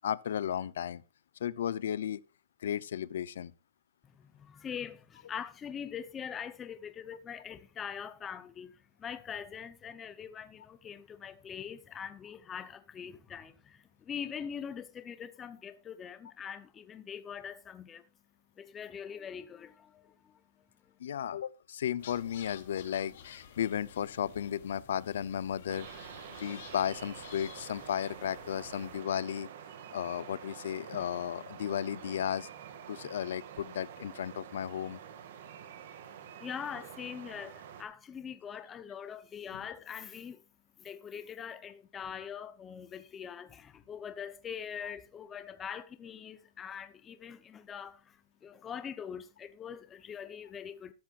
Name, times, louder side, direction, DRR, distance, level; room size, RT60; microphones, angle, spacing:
voice 1, 0.0-1.0 1.4-2.2 2.6-3.5 21.0-26.1 26.4-29.5 29.9-32.5 32.9-35.0 39.5-39.6, left 9 dB, 80° left, 0.7 m, -34 dB
voice 2, 4.1-18.1 18.6-20.4 36.4-40.4 40.8-50.9, left 8 dB, 15° left, 0.8 m, -43 dB
sound 1, 22.0-29.0, left 8 dB, 55° left, 3.0 m, -52 dB
sound 2, 25.7-37.8, right 8 dB, 50° right, 2.0 m, -48 dB
13.5 x 12.0 x 2.5 m
supercardioid pair, 175°, 0 cm